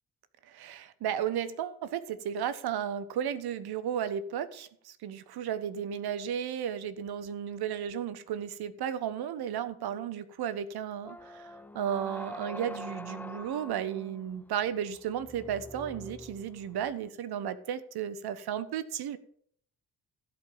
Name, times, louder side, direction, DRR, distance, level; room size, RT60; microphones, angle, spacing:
voice 1, 0.4-19.2, right 9 dB, 55° right, 14 dB, 1.1 m, -34 dB
sound 1, 11.0-17.0, left 2 dB, 5° left, 0.6 m, -45 dB
15.5 x 5.2 x 7.3 m, 0.63 s
figure-of-eight pair, 40°, 46 cm